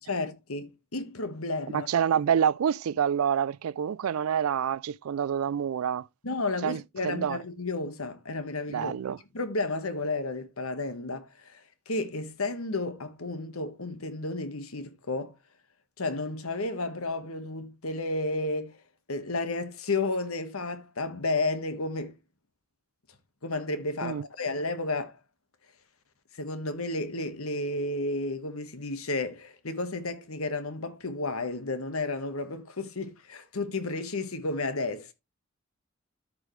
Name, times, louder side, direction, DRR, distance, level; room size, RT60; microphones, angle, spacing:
voice 1, 0.1-1.9 6.2-8.9 9.3-15.4 16.0-18.7 19.1-22.1 23.4-25.2 26.4-35.1, left 2 dB, 90° left, 1.5 m, -32 dB
voice 2, 1.7-6.1 6.6-7.4 8.7-9.2 24.0-24.3, right 8 dB, 85° right, 0.4 m, -27 dB
13.5 x 5.0 x 3.2 m
head